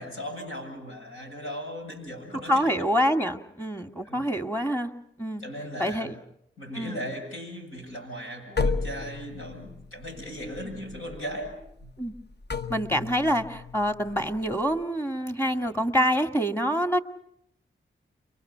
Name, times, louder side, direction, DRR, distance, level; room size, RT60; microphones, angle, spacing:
voice 1, 0.0-2.9 4.0-4.3 5.4-6.1 6.6-11.9, equal, 85° left, 3 dB, 7.6 m, -38 dB
voice 2, 2.5-4.9 5.2-5.4 5.8-6.2 6.7-7.0 12.0-12.1 12.7-17.0, equal, 10° left, 6 dB, 2.1 m, -26 dB
sound 1, 8.6-14.8, left 4 dB, 55° left, 1.1 m, -34 dB
30.0 x 23.5 x 5.8 m, 0.74 s
cardioid pair, 55°, 21 cm